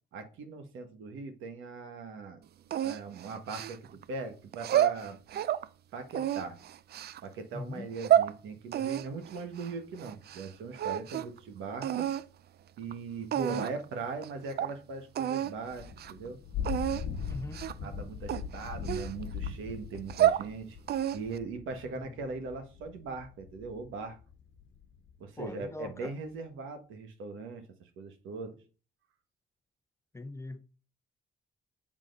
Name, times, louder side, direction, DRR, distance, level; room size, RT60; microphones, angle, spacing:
voice 1, 0.1-2.4 2.8-5.2 5.9-6.6 7.2-12.1 12.8-16.4 17.8-20.8 21.1-24.2 25.2-28.6, right 4 dB, 85° right, 1.3 m, -40 dB
sound 1, 2.7-4.0 4.5-5.7 6.1-7.2 7.8-8.3 8.7-10.5 10.7-11.4 11.8-12.2 12.9-13.0 13.3-13.8 14.2-14.3 14.6-14.7 15.1-15.5 15.9-16.1 16.6-17.0 17.5-17.9 18.3-19.5 19.9-20.5 20.9-21.4, right 11 dB, 55° right, 0.4 m, -29 dB
voice 2, 7.5-7.9 13.3-13.6 17.3-17.6 22.0-22.1 25.4-26.1 30.1-30.6, left 2 dB, 15° left, 0.6 m, -41 dB
Thunder / Rain, 15.6-25.1, left 7 dB, 70° left, 1.1 m, -40 dB
7.3 x 3.7 x 5.2 m
cardioid pair, 90°, 20 cm